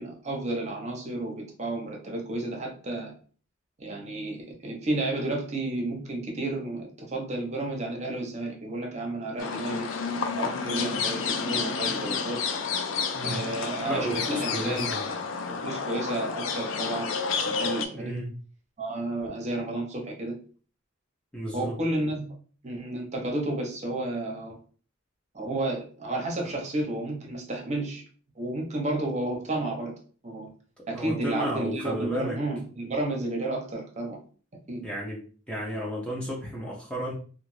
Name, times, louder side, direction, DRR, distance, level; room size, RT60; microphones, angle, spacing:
voice 1, 0.0-3.1 3.8-12.4 13.2-14.9 15.5-17.1 17.5-18.1 18.8-20.4 21.5-22.3 22.6-24.6 25.3-28.0 28.4-29.9 30.2-30.5 30.9-34.2 34.7-34.8, right 2 dB, 35° right, 0 dB, 0.8 m, -32 dB
sound 1, 9.4-17.9, left 5 dB, 75° left, 0.4 m, -30 dB
voice 2, 13.8-15.1 18.0-18.3 21.3-21.8 30.9-32.4 34.8-37.1, equal, 5° left, -3 dB, 0.5 m, -33 dB
2.4 x 2.4 x 3.1 m, 0.40 s
head